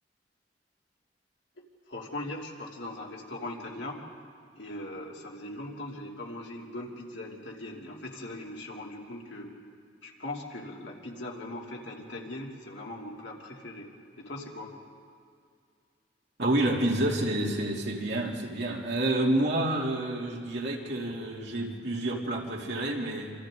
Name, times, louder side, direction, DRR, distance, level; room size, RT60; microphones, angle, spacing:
voice 1, 1.9-4.0 4.6-9.5 10.0-13.9 14.1-14.7, left 1 dB, 75° left, -2 dB, 3.1 m, -40 dB
voice 2, 16.4-23.3, right 1 dB, 65° right, -2 dB, 3.1 m, -29 dB
27.5 x 26.5 x 3.9 m, 2.3 s
head